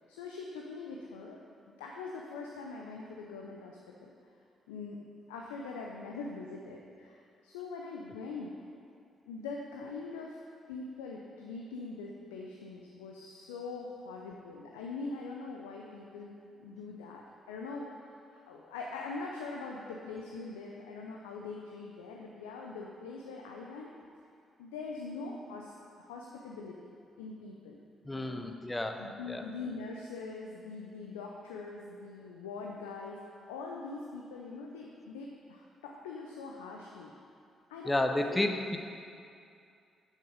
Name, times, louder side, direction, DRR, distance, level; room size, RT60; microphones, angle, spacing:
voice 1, 0.0-1.4 1.7-4.1 4.7-5.0 5.3-8.5 9.3-10.4 10.7-18.2 18.5-23.9 24.6-26.8 27.2-27.8 28.1-28.5 29.0-37.1 37.7-38.5, left 4 dB, 85° left, -1 dB, 0.5 m, -43 dB
voice 2, 28.0-29.0 29.3-29.4 37.9-38.8, left 1 dB, 15° left, 5 dB, 0.7 m, -31 dB
6.6 x 6.4 x 5.0 m, 2.4 s
hypercardioid pair, 45°, 0 cm